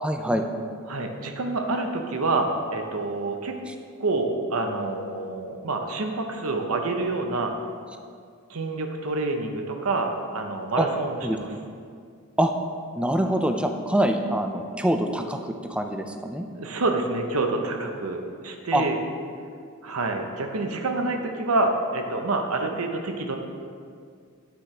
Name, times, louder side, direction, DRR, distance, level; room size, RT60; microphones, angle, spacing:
voice 1, 0.0-0.4 3.7-3.8 10.8-10.9 11.2-11.4 12.4-12.5 13.0-16.5 18.7-18.9, right 1 dB, 5° right, 5 dB, 0.4 m, -25 dB
voice 2, 0.9-3.5 4.0-7.5 8.5-11.5 16.6-19.0 19.8-23.4, right 2 dB, 80° right, 4 dB, 0.9 m, -27 dB
9.7 x 9.4 x 3.3 m, 2.2 s
head